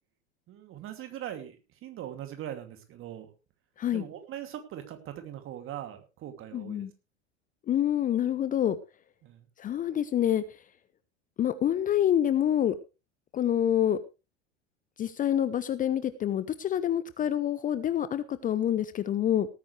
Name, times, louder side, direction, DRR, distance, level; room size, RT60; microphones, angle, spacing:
voice 1, 0.5-3.3 3.9-6.9 9.2-9.5, right 11 dB, 35° right, 8 dB, 2.7 m, -41 dB
voice 2, 6.5-6.9 7.7-8.8 9.6-10.6 11.4-12.8 13.3-14.0 15.0-19.5, left 10 dB, 25° left, 14 dB, 0.7 m, -27 dB
18.5 x 9.5 x 3.3 m, 0.29 s
figure-of-eight pair, 80°, 34 cm